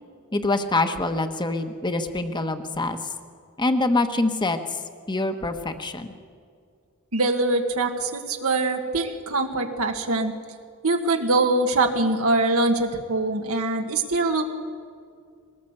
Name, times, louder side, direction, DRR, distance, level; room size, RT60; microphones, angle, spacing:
voice 1, 0.3-3.0 3.6-4.8 5.1-6.1, left 2 dB, 20° left, 8 dB, 1.2 m, -25 dB
voice 2, 7.1-10.3 10.8-14.5, right 2 dB, 85° right, 3 dB, 1.6 m, -23 dB
21.0 x 18.5 x 8.1 m, 2.2 s
head